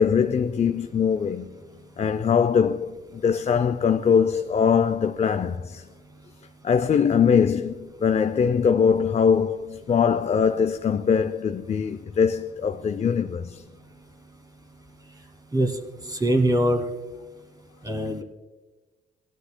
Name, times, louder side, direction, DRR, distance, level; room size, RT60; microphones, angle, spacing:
voice 1, 0.0-1.5 2.0-3.0 3.2-5.8 6.6-13.6, left 6 dB, 35° left, 0.5 m, -22 dB
voice 2, 16.1-16.8 17.8-18.2, right 1 dB, 20° right, 2.2 m, -22 dB
18.5 x 12.0 x 2.2 m
cardioid pair, 90°, 20 cm